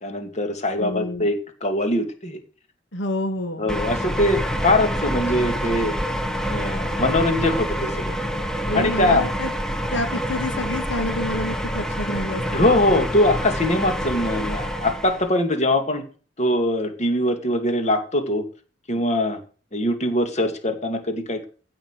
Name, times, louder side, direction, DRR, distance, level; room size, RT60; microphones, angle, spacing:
voice 1, 0.0-2.4 3.6-5.9 6.5-8.2 8.7-9.2 12.5-16.0 16.4-18.4 18.9-19.4 19.7-21.4, left 1 dB, 40° left, 6 dB, 2.6 m, -22 dB
voice 2, 0.8-1.3 2.9-3.8 8.7-9.5 9.9-12.7, left 1 dB, 85° left, 6 dB, 2.4 m, -28 dB
sound 1, 3.7-15.3, equal, 5° left, 1.4 m, -27 dB
16.0 x 6.0 x 6.4 m, 0.38 s
head